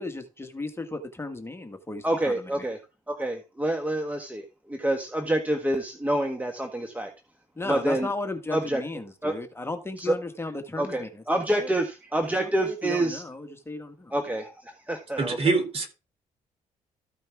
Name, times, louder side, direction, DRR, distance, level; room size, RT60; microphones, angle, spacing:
voice 1, 0.0-2.6 7.6-11.8 12.4-14.1, left 2 dB, 15° left, 1.5 m, -35 dB
voice 2, 2.0-2.8 3.1-7.1 7.7-8.1 8.5-8.8 9.2-9.3 10.0-10.1 10.8-13.2 14.1-14.5 14.9-15.4, right 1 dB, 10° right, 1.4 m, -27 dB
voice 3, 15.2-15.9, right 3 dB, 45° right, 3.1 m, -24 dB
14.0 x 5.2 x 3.5 m
supercardioid pair, 75°, 14 cm